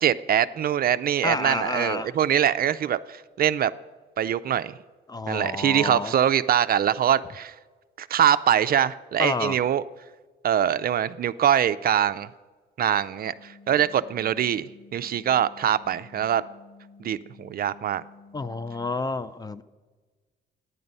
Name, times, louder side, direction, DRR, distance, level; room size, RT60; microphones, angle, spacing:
voice 1, 0.0-3.7 4.2-4.7 5.3-7.5 8.0-9.8 10.4-12.3 12.8-16.4 17.0-18.0, right 10 dB, 50° right, 0.4 m, -23 dB
voice 2, 1.2-2.1 5.1-6.2 9.2-9.6 18.3-19.6, left 3 dB, 20° left, 0.4 m, -29 dB
sound 1, 13.2-18.8, left 4 dB, 10° right, 1.1 m, -51 dB
11.0 x 9.5 x 5.4 m
cardioid pair, 90°, 20 cm